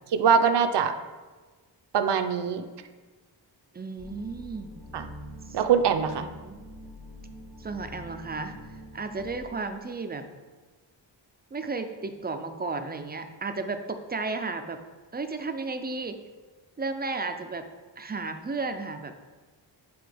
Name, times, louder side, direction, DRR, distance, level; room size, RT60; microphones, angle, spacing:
voice 1, 0.1-0.9 1.9-2.6 4.9-5.1 5.5-6.3, right 7 dB, 65° right, 8 dB, 0.6 m, -23 dB
voice 2, 3.7-4.7 5.5-5.6 6.2-6.6 7.6-8.5 8.9-10.3 11.5-14.8 15.1-16.2 16.8-17.6 18.0-19.1, right 3 dB, 25° right, 7 dB, 0.3 m, -33 dB
sound 1, 4.0-9.4, equal, 50° left, 1.2 m, -45 dB
9.4 x 4.1 x 3.4 m, 1.3 s
wide cardioid pair, 165°, 45 cm